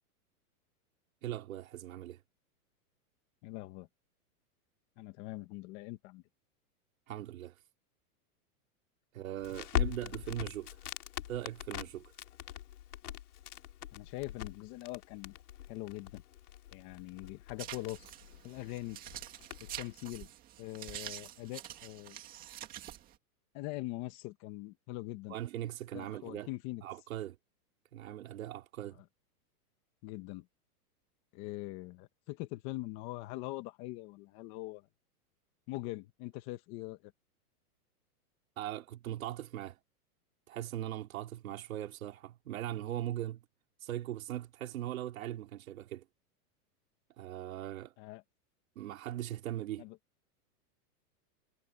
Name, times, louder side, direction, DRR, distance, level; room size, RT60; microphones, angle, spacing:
voice 1, 1.2-2.2 7.1-7.6 9.1-10.8 11.3-12.1 25.3-26.5 26.8-27.4 27.9-29.0 38.6-39.8 40.5-43.4 43.8-46.1 47.2-47.9 48.8-49.9, right 12 dB, 60° right, 3.6 m, -40 dB
voice 2, 3.4-3.9 5.0-6.2 13.9-15.4 15.7-16.2 16.7-18.1 18.4-19.0 19.6-20.3 20.6-22.2 23.5-25.3 25.9-26.8 30.0-30.5 31.3-34.9 35.7-37.1 48.0-48.2 49.8-50.0, left 19 dB, 25° left, 1.6 m, -42 dB
Crackle, 9.4-19.9, left 12 dB, 75° left, 3.7 m, -42 dB
sound 1, 17.6-23.2, right 12 dB, 20° right, 2.0 m, -47 dB
supercardioid pair, 175°, 45 cm